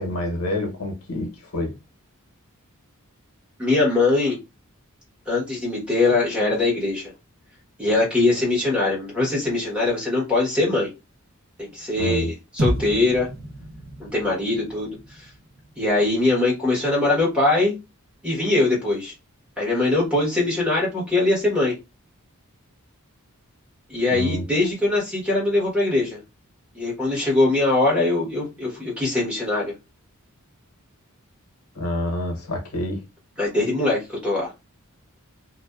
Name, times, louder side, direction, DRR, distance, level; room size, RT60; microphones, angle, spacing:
voice 1, 0.0-1.8 12.0-12.3 24.1-24.5 31.7-33.0, left 1 dB, 85° left, 0.8 m, -27 dB
voice 2, 3.6-4.4 5.3-7.0 7.8-10.9 11.6-13.3 14.1-15.0 15.8-17.7 18.2-19.1 19.6-21.7 23.9-26.2 26.7-29.7 33.4-34.5, left 2 dB, 5° right, 1.0 m, -22 dB
sound 1, 12.6-16.9, right 1 dB, 55° right, 0.7 m, -32 dB
2.5 x 2.1 x 2.3 m
head